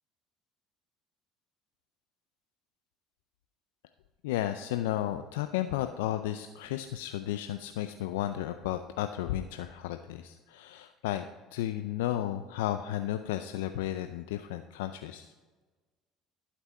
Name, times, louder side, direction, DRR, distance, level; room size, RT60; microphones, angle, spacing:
voice 1, 4.2-15.3, left 12 dB, 80° left, 9 dB, 0.4 m, -33 dB
11.5 x 5.9 x 4.3 m, 1.3 s
hypercardioid pair, 70°, 0 cm